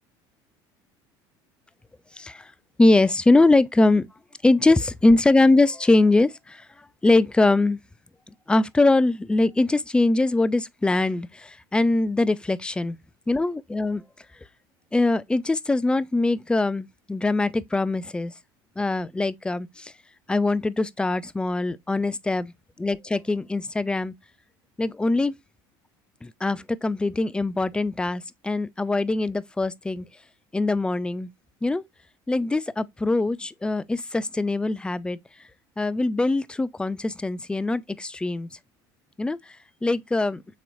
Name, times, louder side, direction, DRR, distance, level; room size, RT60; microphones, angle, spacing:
voice 1, 2.2-2.5 2.8-4.1 4.4-6.7 7.0-7.8 8.5-13.0 13.3-14.0 14.9-18.3 18.8-19.9 20.3-22.5 22.8-24.1 24.8-25.4 26.2-30.0 30.5-31.3 31.6-31.8 32.3-35.2 35.8-38.5 39.2-39.6 39.8-40.4, left 2 dB, 10° left, 0.3 m, -22 dB
7.1 x 3.0 x 2.4 m
supercardioid pair, 95°, 11 cm